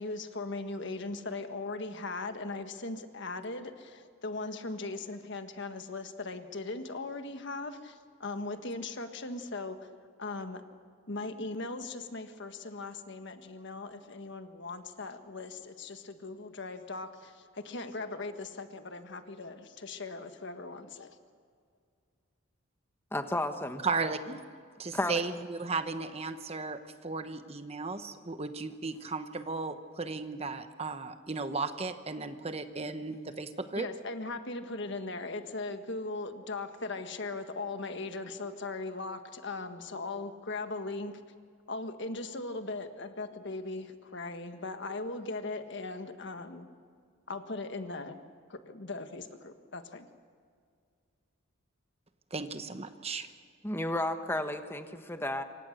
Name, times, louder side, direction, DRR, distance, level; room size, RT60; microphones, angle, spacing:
voice 1, 0.0-9.9 10.2-10.6 11.1-21.2 33.7-41.2 41.7-46.7 47.3-48.2 48.5-50.1, left 3 dB, 55° left, 8 dB, 1.5 m, -39 dB
voice 2, 23.1-23.8 24.9-25.2 53.6-55.4, left 1 dB, 10° left, 7 dB, 1.3 m, -32 dB
voice 3, 23.8-24.4 24.8-33.9 52.3-53.3, right 4 dB, 30° right, 9 dB, 1.0 m, -35 dB
27.0 x 24.5 x 6.6 m, 2.1 s
head